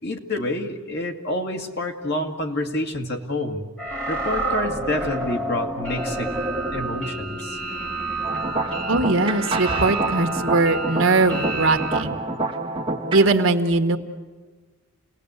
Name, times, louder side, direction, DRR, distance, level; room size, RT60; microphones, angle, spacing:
voice 1, 0.0-3.7 4.1-6.3 6.7-7.6, left 1 dB, 50° left, 3 dB, 2.1 m, -28 dB
sound 1, 3.8-12.0, right 2 dB, 5° left, 2.3 m, -29 dB
sound 2, 8.2-13.3, right 2 dB, 25° right, 1.6 m, -28 dB
voice 2, 8.9-12.2 13.1-14.0, right 3 dB, 60° right, 6 dB, 1.6 m, -20 dB
28.5 x 19.0 x 8.2 m, 1.4 s
head